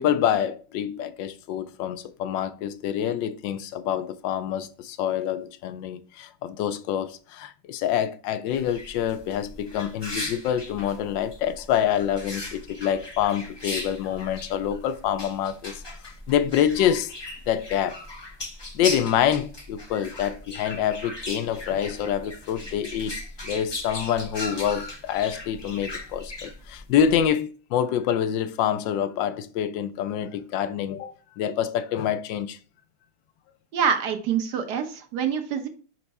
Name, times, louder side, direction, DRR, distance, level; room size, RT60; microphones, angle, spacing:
voice 1, 0.0-17.1 17.5-18.0 18.7-23.2 23.4-32.6, left 9 dB, 75° left, 1.2 m, -26 dB
sound 1, 8.5-27.3, left 2 dB, 25° left, 0.6 m, -38 dB
voice 2, 33.7-35.7, right 7 dB, 65° right, 1.3 m, -26 dB
5.0 x 4.6 x 4.1 m
omnidirectional pair, 2.1 m